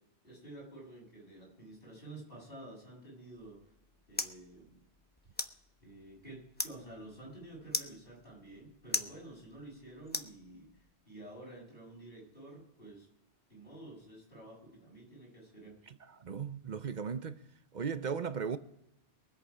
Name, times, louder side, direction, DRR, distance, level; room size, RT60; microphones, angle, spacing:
voice 1, 0.2-3.6 4.1-4.8 5.4-5.5 5.8-10.7 11.1-13.1 13.5-15.8, right 1 dB, 50° left, 7.7 m, -50 dB
sound 1, 3.4-10.9, left 1 dB, 10° left, 0.6 m, -42 dB
voice 2, 15.9-17.4 17.7-18.6, right 6 dB, 45° right, 0.7 m, -37 dB
23.0 x 8.3 x 5.0 m
omnidirectional pair, 1.2 m